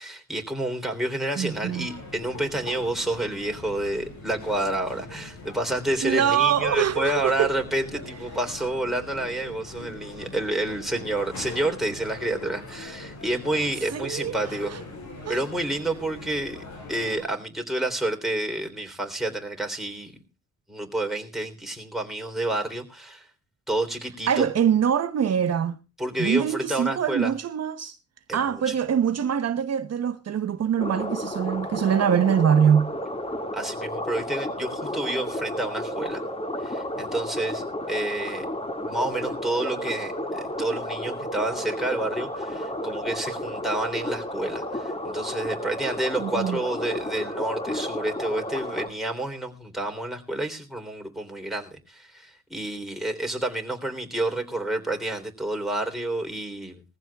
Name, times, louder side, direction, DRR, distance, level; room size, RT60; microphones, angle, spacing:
voice 1, 0.0-14.8 15.3-20.2 20.7-23.3 23.7-24.5 26.0-27.3 28.3-28.7 33.5-36.2 36.6-38.5 38.8-56.8, right 1 dB, ahead, 3.5 m, -29 dB
voice 2, 1.4-1.9 6.0-7.5 13.9-14.8 15.3-15.4 24.3-25.8 26.2-28.0 28.3-32.9 46.2-46.6, right 8 dB, 55° right, 1.0 m, -23 dB
sound 1, 1.5-17.3, left 2 dB, 65° left, 7.4 m, -41 dB
sound 2, 30.8-48.9, left 1 dB, 20° left, 2.1 m, -32 dB
21.0 x 15.0 x 2.3 m
cardioid pair, 115°, 30 cm